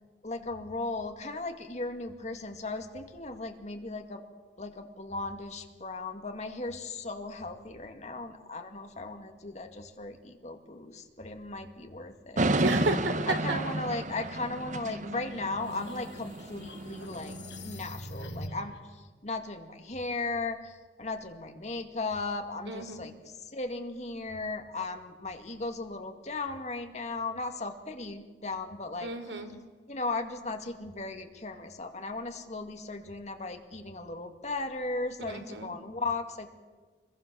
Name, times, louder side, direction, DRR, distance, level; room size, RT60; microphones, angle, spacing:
voice 1, 0.2-4.2 4.6-12.5 13.3-17.4 17.6-18.7 19.2-23.1 23.5-29.1 29.9-36.5, left 3 dB, 40° left, 5 dB, 2.2 m, -36 dB
sound 1, 12.4-17.7, right 2 dB, 45° right, 1.1 m, -32 dB
voice 2, 12.6-13.6 22.7-23.0 29.0-29.5 35.3-35.7, right 2 dB, 80° right, 6 dB, 3.4 m, -32 dB
sound 2, 15.3-18.8, left 1 dB, 90° left, 5.2 m, -44 dB
27.5 x 22.0 x 7.0 m, 1.3 s
head